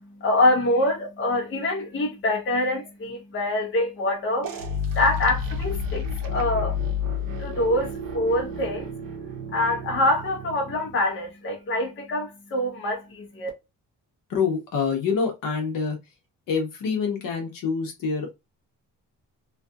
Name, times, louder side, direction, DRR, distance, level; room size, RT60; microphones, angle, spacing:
voice 1, 0.2-4.5 5.0-6.8 7.4-8.9 9.5-13.5, left 1 dB, 35° left, 0.8 m, -25 dB
sound 1, 4.4-11.1, left 4 dB, 70° right, 0.7 m, -31 dB
voice 2, 14.3-16.0 16.5-18.3, left 5 dB, 70° left, 0.9 m, -26 dB
2.6 x 2.5 x 2.3 m
cardioid pair, 175°, 35 cm